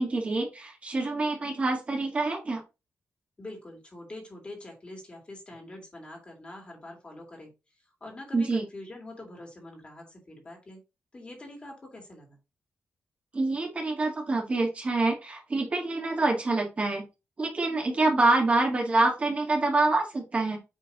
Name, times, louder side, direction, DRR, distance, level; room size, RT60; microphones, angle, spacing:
voice 1, 0.0-2.6 8.3-8.6 13.3-17.0 17.4-20.6, right 2 dB, 30° right, -1 dB, 2.2 m, -26 dB
voice 2, 3.4-7.5 7.8-10.8 11.1-12.4, left 1 dB, 25° left, 0 dB, 3.0 m, -44 dB
7.4 x 3.9 x 4.1 m, 0.27 s
wide cardioid pair, 135°, 4 cm